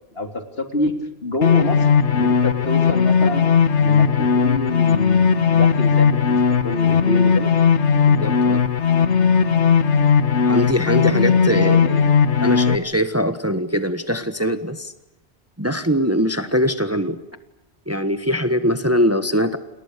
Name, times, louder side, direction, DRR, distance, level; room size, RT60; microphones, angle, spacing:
voice 1, 0.1-0.9 1.2-1.9 2.1-3.4 3.8-6.4 6.6-7.5 11.5-12.0, left 1 dB, 60° left, 5 dB, 3.7 m, -26 dB
sound 1, 1.4-12.7, left 6 dB, 85° left, 1.6 m, -17 dB
voice 2, 8.1-8.6 10.4-11.8 12.4-14.9 15.6-17.2 17.9-19.6, equal, 15° right, 10 dB, 1.4 m, -22 dB
30.0 x 27.5 x 6.8 m, 0.87 s
omnidirectional pair, 1.1 m